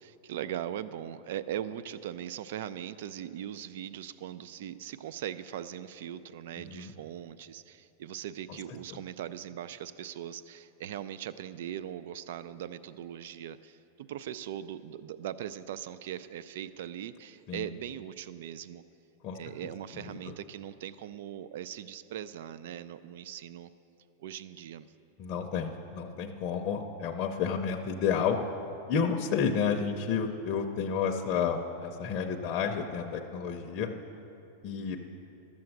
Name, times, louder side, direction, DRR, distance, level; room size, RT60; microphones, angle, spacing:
voice 1, 0.0-18.8 19.3-23.7 24.2-24.9 34.8-35.0, right 10 dB, 60° right, 15 dB, 0.4 m, -40 dB
voice 2, 25.2-28.4 28.9-33.9 34.6-35.0, left 6 dB, 30° left, 2 dB, 0.6 m, -30 dB
12.5 x 7.0 x 7.8 m, 2.9 s
supercardioid pair, 170°, 0 cm